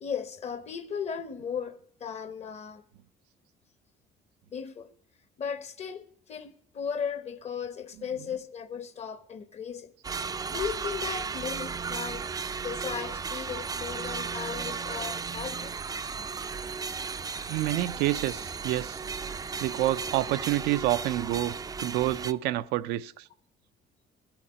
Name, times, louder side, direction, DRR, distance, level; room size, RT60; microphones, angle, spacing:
voice 1, 0.0-2.8 4.5-4.9 5.4-9.9 10.5-12.3 12.6-15.8, left 7 dB, 40° left, 1.0 m, -36 dB
sound 1, 10.0-22.3, right 5 dB, 20° right, 0.4 m, -35 dB
voice 2, 17.5-19.0 19.6-21.5 21.8-23.3, right 15 dB, 90° right, 0.5 m, -28 dB
13.0 x 5.9 x 9.6 m
cardioid pair, 110°, 17 cm